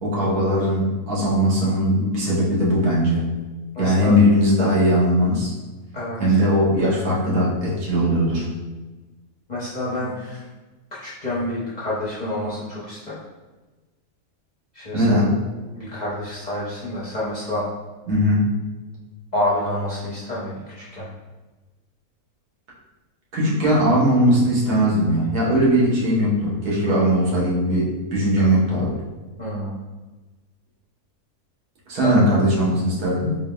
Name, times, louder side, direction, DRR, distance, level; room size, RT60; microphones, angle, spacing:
voice 1, 0.0-3.3 3.8-5.5 6.2-8.5 14.9-15.3 18.1-18.5 23.3-29.0 31.9-33.4, equal, 80° right, -5 dB, 1.6 m, -19 dB
voice 2, 3.7-4.2 5.9-6.4 9.5-10.5 10.9-13.2 14.7-15.2 15.7-17.7 19.3-21.1 29.4-29.7 32.0-32.2, left 1 dB, 40° left, -8 dB, 0.7 m, -28 dB
4.0 x 3.3 x 2.2 m, 1.2 s
omnidirectional pair, 1.6 m